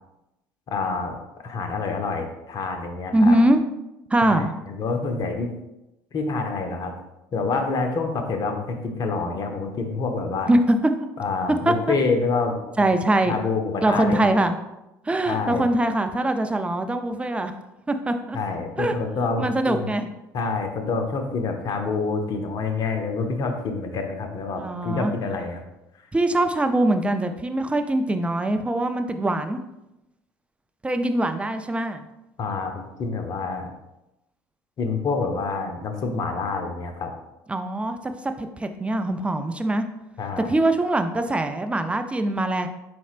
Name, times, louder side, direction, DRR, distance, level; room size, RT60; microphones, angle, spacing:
voice 1, 0.7-3.4 4.3-5.5 6.1-6.9 7.3-10.5 11.2-12.9 13.3-14.2 15.3-15.6 18.3-19.9 20.3-25.6 32.4-33.7 34.8-37.1 40.2-40.5, left 4 dB, 50° left, 5 dB, 0.8 m, -27 dB
voice 2, 3.1-3.6 4.1-4.5 10.5-10.9 11.7-11.9 12.8-13.4 13.8-14.6 15.0-17.5 17.9-18.4 18.8-18.9 19.4-20.1 24.5-25.1 26.1-29.6 30.8-32.1 37.5-39.9 40.4-42.7, right 1 dB, 15° right, 8 dB, 0.4 m, -22 dB
4.4 x 4.1 x 2.4 m, 0.93 s
hypercardioid pair, 75°, 9 cm